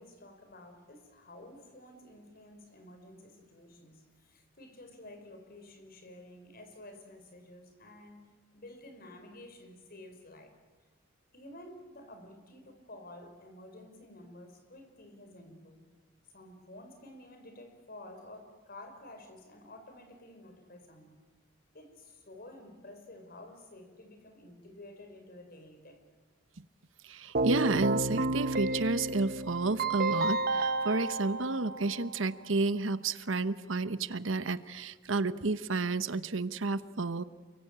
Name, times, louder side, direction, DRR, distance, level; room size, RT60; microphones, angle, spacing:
voice 1, 0.0-8.2 8.5-10.5 11.3-15.9 16.3-21.2 21.7-26.0, left 1 dB, 50° left, 6 dB, 4.8 m, -51 dB
voice 2, 27.0-37.2, right 3 dB, 85° right, 13 dB, 1.0 m, -31 dB
Keyboard (musical), 27.3-32.3, right 2 dB, 50° right, 1.1 m, -31 dB
29.0 x 23.0 x 8.8 m, 1.4 s
head